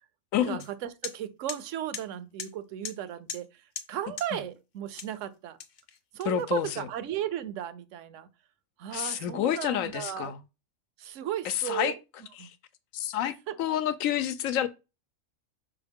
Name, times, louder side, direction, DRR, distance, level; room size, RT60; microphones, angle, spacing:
voice 1, 0.4-5.6 6.1-8.3 8.8-10.3 11.0-12.0 12.4-12.5 13.5-13.6, right 11 dB, 70° right, 1.0 m, -35 dB
sound 1, 0.6-0.7 1.0-1.2 1.5-1.6 1.9-2.1 2.4-2.5 2.8-3.0 3.3-3.5 3.8-3.9 4.2-4.3 5.0-5.2 5.6-6.6, left 6 dB, 50° left, 0.6 m, -38 dB
voice 2, 6.3-6.9 8.9-10.4 11.4-11.9 12.4-12.5 12.9-14.7, left 11 dB, 80° left, 1.0 m, -29 dB
5.7 x 4.6 x 3.5 m
omnidirectional pair, 1.4 m